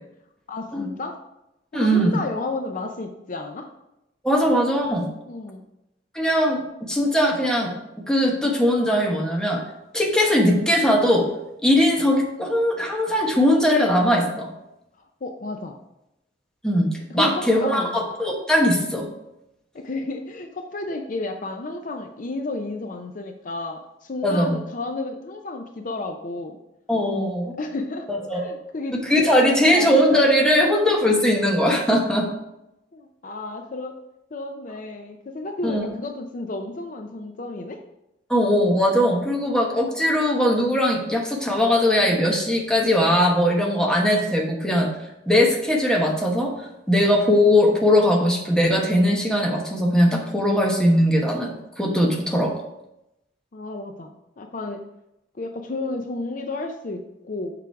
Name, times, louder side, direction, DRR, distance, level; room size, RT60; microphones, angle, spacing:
voice 1, 0.5-1.2 1.7-3.7 5.3-5.6 15.0-15.8 17.1-18.0 19.7-26.6 27.6-30.0 30.6-30.7 32.9-34.0 34.3-37.8 53.5-54.8 55.3-57.5, left 2 dB, 45° left, 5 dB, 0.5 m, -32 dB
voice 2, 1.7-2.2 4.2-5.1 6.1-7.7 8.1-9.6 9.9-11.3 11.6-14.5 16.6-19.1 24.2-24.5 26.9-27.5 28.1-28.4 29.0-32.3 35.6-35.8 38.3-44.9 45.3-46.5 46.9-52.5, equal, 5° left, 0 dB, 1.1 m, -20 dB
6.9 x 4.9 x 4.6 m, 0.88 s
head